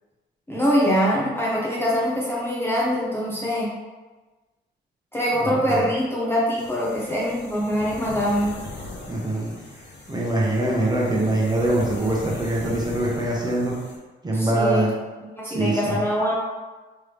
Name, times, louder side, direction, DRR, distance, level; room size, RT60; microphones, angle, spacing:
voice 1, 0.5-3.7 5.1-8.5 14.3-14.9 15.2-16.3, equal, 10° left, -6 dB, 0.9 m, -23 dB
voice 2, 5.4-5.7 9.1-9.5 10.1-13.7 14.2-14.9 15.5-16.0, right 1 dB, 20° right, -4 dB, 1.1 m, -23 dB
sound 1, 6.6-14.0, left 2 dB, 60° left, 0.9 m, -39 dB
3.5 x 3.1 x 3.3 m, 1.2 s
cardioid pair, 90°, 20 cm